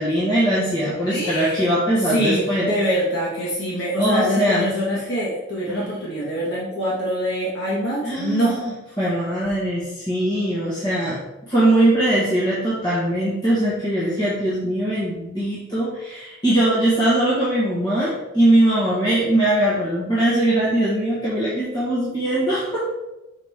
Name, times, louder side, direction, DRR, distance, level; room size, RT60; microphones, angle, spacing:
voice 1, 0.0-2.7 4.0-4.7 5.7-5.8 8.0-8.7 9.0-22.8, right 1 dB, 20° left, -9 dB, 1.6 m, -21 dB
voice 2, 1.1-1.7 2.0-8.6, equal, 60° left, -6 dB, 1.6 m, -24 dB
6.3 x 4.9 x 3.5 m, 0.97 s
head